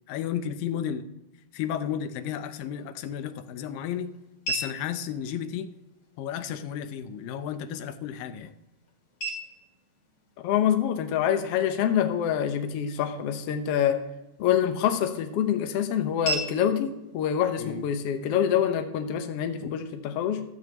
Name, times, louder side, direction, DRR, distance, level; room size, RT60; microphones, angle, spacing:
voice 1, 0.1-1.1 1.5-4.1 4.5-5.7 6.2-8.5 17.6-17.8, left 9 dB, 85° left, 11 dB, 2.4 m, -33 dB
sound 1, 2.7-18.7, right 2 dB, 40° left, 2.3 m, -41 dB
voice 2, 10.4-14.0 14.4-20.4, left 9 dB, 70° left, 6 dB, 1.5 m, -26 dB
15.0 x 13.0 x 3.0 m, 0.92 s
omnidirectional pair, 3.9 m